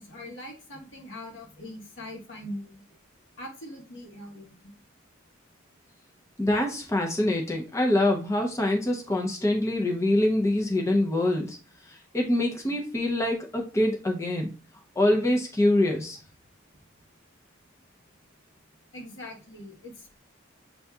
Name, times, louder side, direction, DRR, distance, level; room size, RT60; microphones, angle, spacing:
voice 1, 0.0-2.9 3.4-4.6 18.9-20.2, left 1 dB, 70° left, 0 dB, 1.3 m, -42 dB
voice 2, 6.4-11.6 12.1-14.5 15.0-16.2, left 1 dB, 15° left, 1 dB, 0.5 m, -25 dB
6.9 x 2.6 x 2.3 m, 0.34 s
head